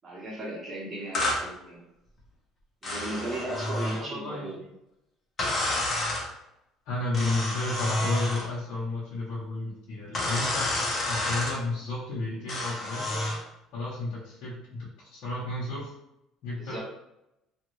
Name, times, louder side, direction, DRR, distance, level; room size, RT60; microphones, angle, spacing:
voice 1, 0.0-1.8 2.8-4.6 16.5-16.8, right 1 dB, 30° right, -4 dB, 1.3 m, -36 dB
sound 1, 1.1-1.4 2.8-4.0 5.4-6.3 7.1-8.5 10.1-11.6 12.5-13.4, left 1 dB, 35° left, 1.0 m, -29 dB
voice 2, 3.8-4.5 6.9-10.7 11.1-13.3 13.7-15.9 16.4-16.8, left 2 dB, 70° left, -8 dB, 0.9 m, -32 dB
2.6 x 2.6 x 3.1 m, 0.85 s
cardioid pair, 110°, 0 cm